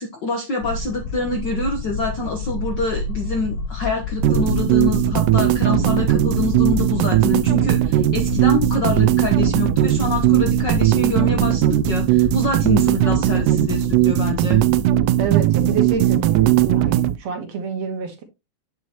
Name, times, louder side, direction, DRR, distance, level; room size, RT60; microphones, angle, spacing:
voice 1, 0.0-14.6, left 3 dB, 60° left, 1.2 m, -26 dB
sound 1, 0.6-17.0, left 4 dB, 80° left, 1.6 m, -30 dB
sound 2, 4.2-17.2, right 15 dB, 85° right, 2.0 m, -18 dB
voice 2, 15.2-18.2, right 6 dB, 60° right, 2.3 m, -27 dB
9.0 x 6.2 x 2.9 m
omnidirectional pair, 3.6 m